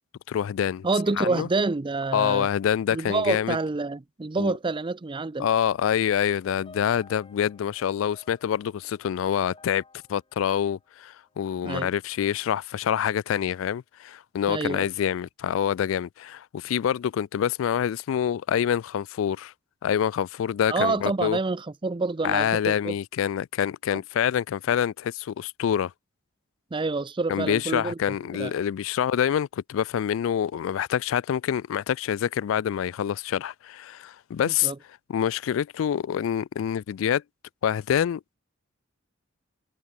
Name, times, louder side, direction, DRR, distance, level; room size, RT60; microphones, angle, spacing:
voice 1, 0.3-0.9 1.2-1.5 2.1-3.6 4.4-4.5 5.4-9.8 10.1-19.5 19.8-21.4 22.2-25.9 27.3-34.7 35.1-37.2 37.6-38.2, left 9 dB, 80° left, 0.3 m, -26 dB
voice 2, 0.8-2.5 2.9-5.5 11.6-11.9 14.5-14.9 20.7-22.9 23.9-24.0 26.7-28.0 28.3-28.5 34.4-34.8, right 3 dB, 25° right, 0.5 m, -27 dB
sound 1, 6.3-11.6, left 3 dB, 25° left, 2.4 m, -54 dB
head